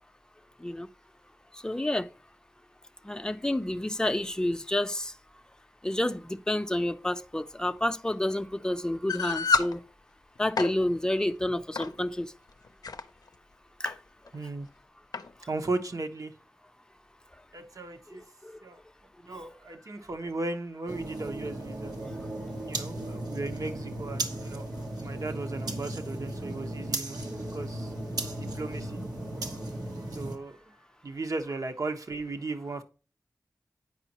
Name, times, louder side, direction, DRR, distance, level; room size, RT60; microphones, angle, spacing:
voice 1, 1.5-2.1 3.0-5.1 5.8-9.8 10.4-12.3 13.8-13.9 18.1-18.5 19.3-19.5, left 1 dB, 10° left, 0.6 m, -29 dB
sound 1, 9.1-9.7 10.4-10.7 11.8-12.0 12.6-13.0 13.9-14.0 14.3-14.4 15.1-15.3, left 4 dB, 85° left, 0.5 m, -28 dB
voice 2, 14.3-14.7 15.5-16.3 17.5-18.2 18.6-18.8 19.2-21.9 22.6-24.6 25.0-27.2 27.5-27.9 28.4-29.0 30.1-30.6 31.0-32.8, right 3 dB, 60° right, 1.0 m, -36 dB
sound 2, 20.9-30.4, right 1 dB, 80° right, 1.3 m, -36 dB
9.0 x 5.2 x 2.9 m
wide cardioid pair, 50°, 6 cm